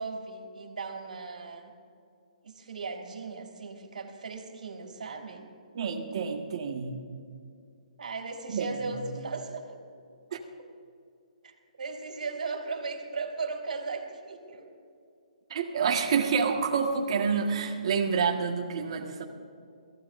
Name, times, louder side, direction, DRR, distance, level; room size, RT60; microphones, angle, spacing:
voice 1, 0.0-1.7 2.4-5.5 8.0-9.8 11.4-14.7, right 4 dB, 80° right, 0 dB, 3.4 m, -37 dB
voice 2, 5.7-7.0 8.5-9.0 10.3-10.4 15.5-19.2, right 6 dB, 45° right, 2 dB, 1.7 m, -28 dB
21.5 x 15.0 x 2.7 m, 2.4 s
hypercardioid pair, 165°, 4 cm